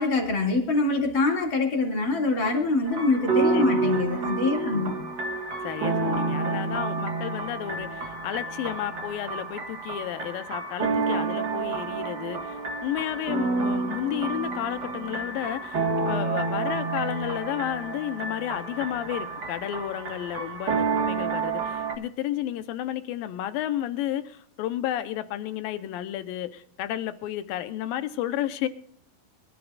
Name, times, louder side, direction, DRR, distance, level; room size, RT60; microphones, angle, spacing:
voice 1, 0.0-4.9, left 3 dB, 35° left, 2.7 m, -24 dB
sound 1, 2.8-22.0, right 4 dB, 45° right, 1.4 m, -29 dB
voice 2, 3.5-4.0 4.4-5.1 5.6-28.7, left 12 dB, 90° left, 2.6 m, -32 dB
24.5 x 13.0 x 2.4 m
omnidirectional pair, 4.1 m